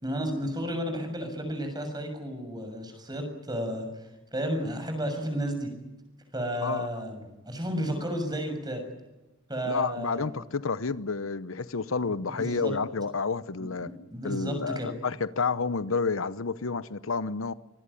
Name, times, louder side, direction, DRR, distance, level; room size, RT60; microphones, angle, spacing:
voice 1, 0.0-3.9 4.3-5.7 6.3-8.8 9.5-10.4 12.1-12.7 13.6-13.7 14.1-14.9, equal, 20° right, 6.8 m, -32 dB
voice 2, 6.6-7.0 9.7-13.9 14.2-17.5, left 4 dB, 85° left, 0.9 m, -30 dB
25.5 x 20.0 x 9.9 m
head